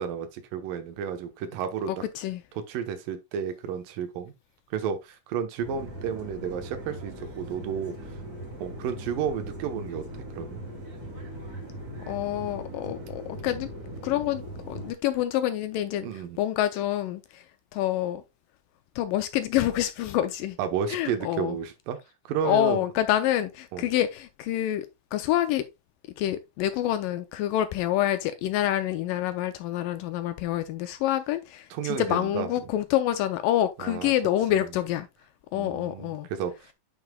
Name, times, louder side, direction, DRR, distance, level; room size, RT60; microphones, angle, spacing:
voice 1, 0.0-2.0 2.7-4.3 4.7-8.0 8.6-10.1 10.3-10.6 16.0-16.4 20.6-22.0 22.3-22.8 23.7-23.9 31.7-32.5 33.8-34.1 34.5-34.6 35.5-36.5, right 7 dB, 75° right, 2.6 m, -32 dB
voice 2, 1.9-2.4 12.1-13.7 14.0-17.4 17.7-18.2 19.0-20.6 20.9-21.6 22.4-24.9 25.1-25.6 26.2-35.1 35.5-36.3, left 12 dB, 80° left, 2.1 m, -27 dB
sound 1, 5.6-14.9, right 1 dB, 30° right, 2.4 m, -40 dB
9.5 x 5.4 x 2.2 m
omnidirectional pair, 4.2 m